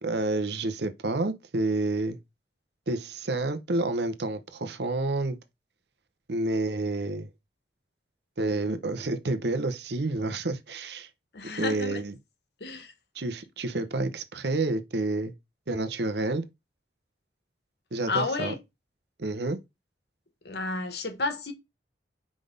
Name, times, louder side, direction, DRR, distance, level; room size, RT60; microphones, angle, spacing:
voice 1, 0.0-2.2 2.9-5.4 6.3-7.3 8.4-11.1 11.6-12.1 13.1-15.3 15.7-16.4 17.9-18.5 19.2-19.6, right 2 dB, 70° right, 0.9 m, -29 dB
voice 2, 11.3-12.0 12.6-12.9 18.1-18.6 20.4-21.5, left 3 dB, 70° left, 1.2 m, -31 dB
5.0 x 4.0 x 5.2 m
head